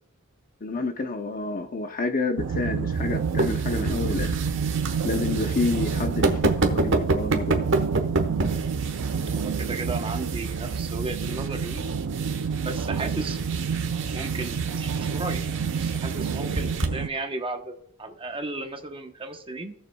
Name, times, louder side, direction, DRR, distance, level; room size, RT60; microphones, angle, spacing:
voice 1, 0.6-4.3 5.0-7.6, left 3 dB, 40° left, 7 dB, 0.7 m, -29 dB
sound 1, 2.4-17.1, right 6 dB, 90° right, 0.5 m, -28 dB
sound 2, 2.9-16.9, right 3 dB, 60° right, 1.2 m, -30 dB
voice 2, 9.3-11.8 12.6-13.4 14.1-15.5 15.8-19.7, right 2 dB, 25° right, 5 dB, 1.0 m, -34 dB
18.0 x 6.8 x 2.3 m, 0.67 s
head